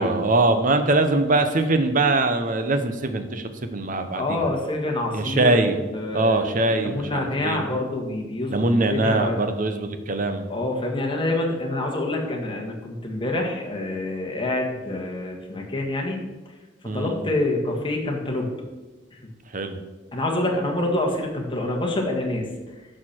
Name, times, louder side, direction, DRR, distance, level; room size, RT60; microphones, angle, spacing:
voice 1, 0.0-4.5 5.1-5.8 6.1-7.6 8.5-10.5 16.8-17.2 19.5-19.8, right 2 dB, 45° right, 8 dB, 0.9 m, -22 dB
voice 2, 4.2-5.6 5.9-8.5 8.9-9.4 10.5-16.2 16.9-18.5 19.1-19.2 20.1-22.5, left 2 dB, 30° left, 0 dB, 1.7 m, -26 dB
11.0 x 6.7 x 4.5 m, 1.2 s
head